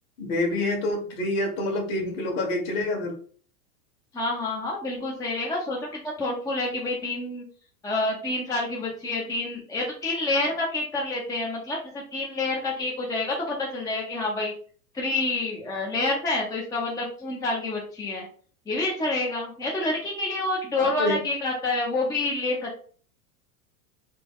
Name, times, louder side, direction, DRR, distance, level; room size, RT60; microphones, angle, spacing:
voice 1, 0.2-3.1 20.8-21.2, left 2 dB, 45° left, 1 dB, 1.7 m, -27 dB
voice 2, 4.1-7.4 7.8-14.5 14.9-18.3 18.7-22.8, left 2 dB, 10° left, -2 dB, 0.7 m, -28 dB
4.2 x 2.2 x 3.6 m, 0.44 s
hypercardioid pair, 125°, 45 cm